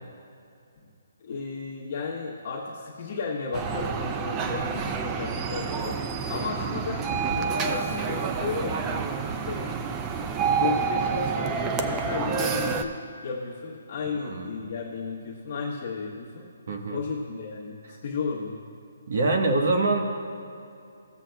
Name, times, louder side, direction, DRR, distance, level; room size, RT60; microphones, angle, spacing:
voice 1, 1.2-6.0 6.3-7.1 7.3-9.9 10.6-16.5 16.9-18.6, left 4 dB, 35° left, -4 dB, 1.0 m, -34 dB
sound 1, 3.5-12.8, right 6 dB, 15° right, 0.4 m, -28 dB
voice 2, 14.2-14.5 16.7-17.0 19.1-20.0, right 2 dB, 55° right, 3 dB, 1.1 m, -24 dB
15.0 x 7.4 x 2.3 m, 2.6 s
hypercardioid pair, 165°, 0 cm